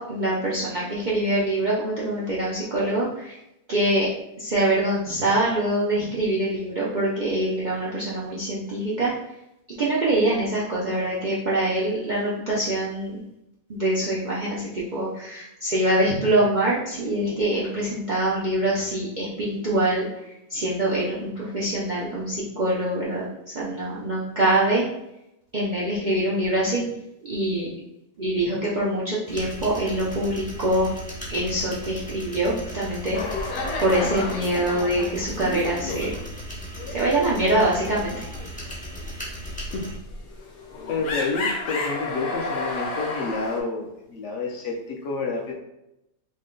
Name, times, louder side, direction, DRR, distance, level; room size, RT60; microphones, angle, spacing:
voice 1, 0.0-3.4 3.7-4.1 4.4-9.1 9.7-13.2 13.7-24.8 25.5-26.8 27.2-27.7 28.2-30.9 31.3-33.2 33.8-36.2 36.9-38.3, right 1 dB, 75° right, -7 dB, 0.4 m, -24 dB
sound 1, 29.3-40.0, equal, 10° left, 0.4 m, -37 dB
sound 2, 33.1-36.5 36.7-37.0 37.4-43.6, left 2 dB, 85° left, 1.4 m, -32 dB
voice 2, 40.9-45.5, left 4 dB, 65° left, 1 dB, 0.8 m, -29 dB
3.8 x 2.1 x 3.7 m, 0.86 s
omnidirectional pair, 1.7 m